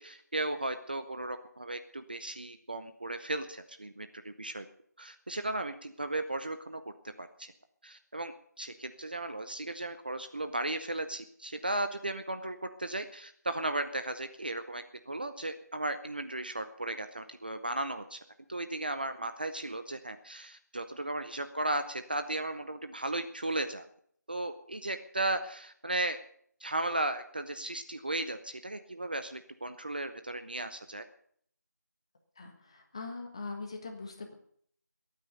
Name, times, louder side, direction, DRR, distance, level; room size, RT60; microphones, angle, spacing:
voice 1, 0.0-4.6 5.0-6.8 7.2-7.5 7.8-18.2 18.5-23.8 24.3-26.2 26.6-31.0, right 2 dB, 30° right, 9 dB, 0.7 m, -35 dB
voice 2, 32.3-34.3, left 3 dB, 15° left, 3 dB, 1.5 m, -42 dB
21.5 x 9.2 x 6.7 m, 0.63 s
figure-of-eight pair, 175°, 10 cm